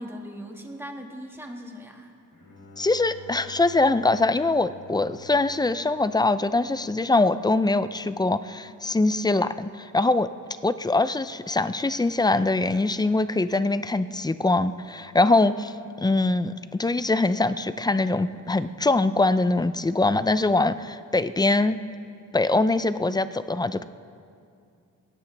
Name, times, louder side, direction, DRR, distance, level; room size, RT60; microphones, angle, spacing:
voice 1, 0.0-2.1, equal, 5° right, 1 dB, 1.8 m, -39 dB
Bowed string instrument, 2.3-9.3, left 4 dB, 65° left, 3.6 m, -50 dB
voice 2, 2.8-10.3 10.6-21.8 22.3-23.8, left 2 dB, 15° left, 13 dB, 0.4 m, -23 dB
23.0 x 17.0 x 3.4 m, 2.4 s
wide cardioid pair, 115°, 32 cm